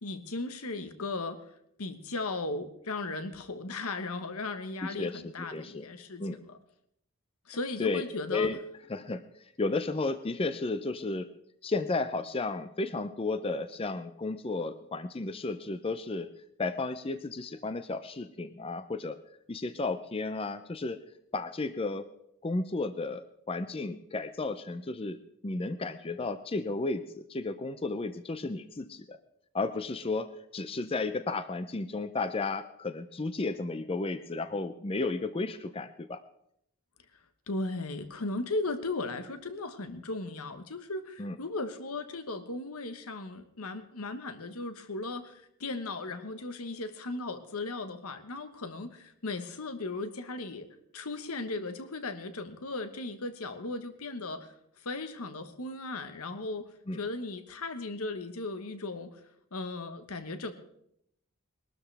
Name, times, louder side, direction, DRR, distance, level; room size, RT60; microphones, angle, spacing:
voice 1, 0.0-1.4 1.8-6.6 7.5-8.5 37.5-50.7 50.9-59.2 59.5-60.5, left 2 dB, 80° left, 9 dB, 1.2 m, -37 dB
voice 2, 4.8-5.9 6.2-6.4 7.8-8.0 8.3-8.6 8.9-9.2 9.6-11.3 11.6-16.3 16.6-19.2 19.5-21.0 21.3-22.1 22.4-29.2 29.5-36.2 41.2-41.4 56.9-57.0, left 3 dB, 25° left, 11 dB, 0.5 m, -33 dB
21.5 x 12.5 x 3.4 m, 0.74 s
head